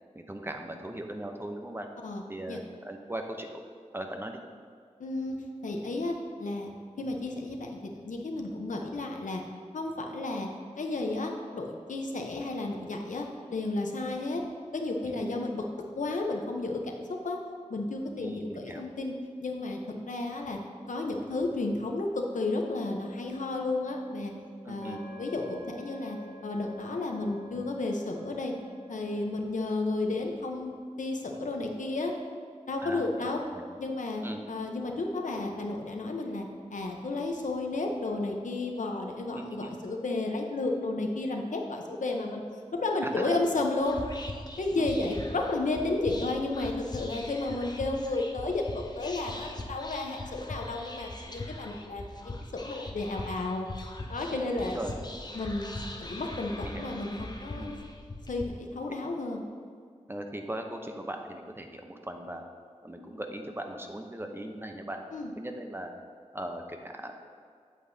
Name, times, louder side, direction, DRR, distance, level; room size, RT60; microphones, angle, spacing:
voice 1, 0.1-1.9 2.3-3.6 3.9-4.4 15.1-15.5 18.2-18.8 24.6-25.0 32.8-33.7 34.2-34.4 39.3-39.8 43.0-43.4 44.7-44.9 54.3-54.9 56.6-56.9 57.6-57.8 60.1-62.4 62.8-65.0 65.4-65.9 66.3-67.1, right 1 dB, 20° right, 4 dB, 0.7 m, -39 dB
voice 2, 5.0-5.4 5.6-6.7 7.0-9.4 9.7-10.5 10.8-14.4 14.7-15.6 16.0-17.0 17.2-17.4 17.7-19.1 19.4-19.8 20.1-20.6 20.9-24.3 24.7-26.2 26.4-28.5 28.9-32.1 32.7-33.4 33.8-34.2 34.5-36.5 36.7-42.4 42.7-44.0 44.6-53.7 54.1-54.8 55.3-55.7 56.0-57.8 58.3-59.4 65.1-65.3, left 2 dB, 85° left, 2 dB, 0.8 m, -32 dB
sound 1, 22.9-29.3, left 1 dB, 5° left, 2.0 m, -50 dB
Whispering, 43.8-58.4, left 2 dB, 35° left, 0.7 m, -41 dB
8.4 x 7.7 x 2.7 m, 2.1 s
wide cardioid pair, 70°, 13 cm